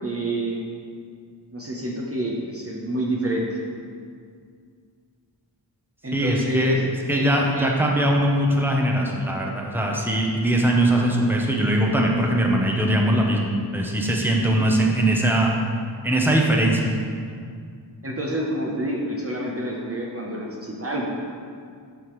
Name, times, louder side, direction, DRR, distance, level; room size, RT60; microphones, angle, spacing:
voice 1, 0.0-0.6 1.5-3.4 6.0-7.8 18.0-21.1, right 1 dB, 30° right, -2 dB, 0.9 m, -28 dB
voice 2, 6.1-6.8 7.1-15.5 16.0-16.8, right 1 dB, 5° right, -1 dB, 0.9 m, -21 dB
8.0 x 5.7 x 3.2 m, 2.2 s
wide cardioid pair, 80°, 44 cm